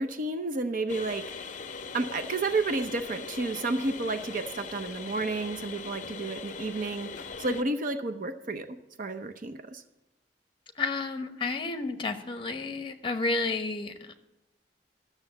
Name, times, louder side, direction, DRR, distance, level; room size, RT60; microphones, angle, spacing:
voice 1, 0.0-1.6 1.9-9.8, right 3 dB, 50° right, 8 dB, 0.6 m, -31 dB
sound 1, 0.9-7.6, left 5 dB, 45° left, 0.6 m, -40 dB
voice 2, 10.8-14.1, left 3 dB, 30° left, 7 dB, 1.0 m, -31 dB
12.5 x 6.8 x 7.1 m, 0.97 s
head